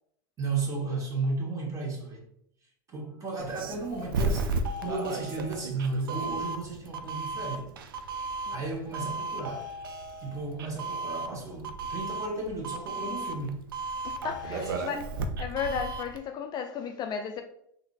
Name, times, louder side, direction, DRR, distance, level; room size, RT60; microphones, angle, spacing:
voice 1, 0.4-2.2 2.9-7.7 8.2-9.7 10.2-13.6 14.5-15.0, right 3 dB, 30° right, 1.2 m, -34 dB
Doorbell, 3.4-16.2, right 3 dB, 85° right, 0.4 m, -34 dB
voice 2, 14.0-15.0 15.4-17.4, left 7 dB, 40° left, 0.4 m, -34 dB
3.7 x 2.6 x 2.4 m
hypercardioid pair, 100°, 11 cm